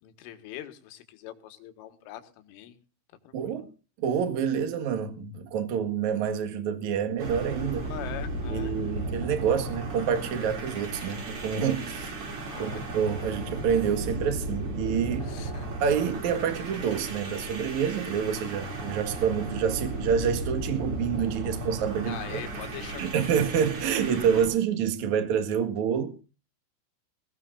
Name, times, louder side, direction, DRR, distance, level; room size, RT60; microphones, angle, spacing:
voice 1, 0.0-2.8 3.3-3.6 7.8-9.1 9.5-9.6 12.5-12.9 15.2-15.7 22.0-23.4, left 12 dB, 80° left, 4.0 m, -43 dB
voice 2, 3.3-3.6 4.0-7.9 8.5-12.1 12.6-15.3 15.8-22.4 23.0-26.2, right 7 dB, 55° right, 2.1 m, -27 dB
sound 1, 7.2-24.5, right 2 dB, 35° right, 2.9 m, -35 dB
20.5 x 17.5 x 2.6 m
omnidirectional pair, 5.7 m